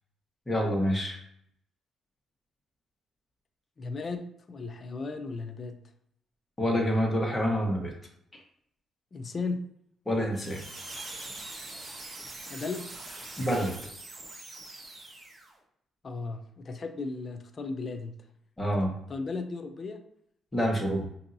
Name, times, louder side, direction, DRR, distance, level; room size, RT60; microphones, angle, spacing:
voice 1, 0.5-1.2 6.6-7.9 10.1-10.6 10.9-11.0 13.4-13.7 18.6-18.9 20.5-21.0, equal, 15° left, -1 dB, 1.2 m, -27 dB
voice 2, 3.8-4.2 4.5-5.8 9.1-9.6 12.5-12.9 16.0-18.1 19.1-20.0, left 4 dB, 40° left, 6 dB, 0.5 m, -35 dB
sound 1, 10.3-15.5, right 2 dB, 30° right, 1.0 m, -43 dB
5.3 x 2.7 x 2.6 m, 0.72 s
cardioid pair, 90°, 0 cm